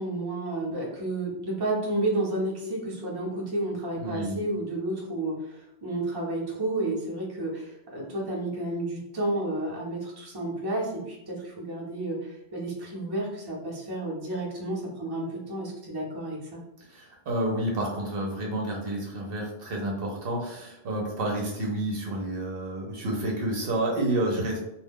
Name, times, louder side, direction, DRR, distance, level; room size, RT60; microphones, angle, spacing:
voice 1, 0.0-16.6, right 2 dB, 25° right, -4 dB, 0.7 m, -31 dB
voice 2, 3.9-4.4 16.9-24.6, right 1 dB, 65° right, -1 dB, 0.8 m, -29 dB
2.2 x 2.2 x 3.5 m, 0.84 s
omnidirectional pair, 1.1 m